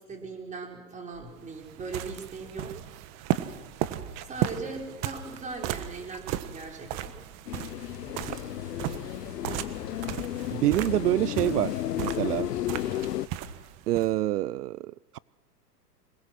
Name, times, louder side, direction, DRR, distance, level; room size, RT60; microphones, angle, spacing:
voice 1, 0.0-2.7 4.2-7.1, right 4 dB, 15° right, 4.6 m, -39 dB
sound 1, 1.2-14.1, right 12 dB, 35° right, 1.4 m, -36 dB
sound 2, 7.5-13.3, left 13 dB, 75° left, 0.8 m, -33 dB
voice 2, 10.5-12.5 13.9-15.2, right 15 dB, 70° right, 0.6 m, -27 dB
26.5 x 20.0 x 6.1 m
hypercardioid pair, 130°, 48 cm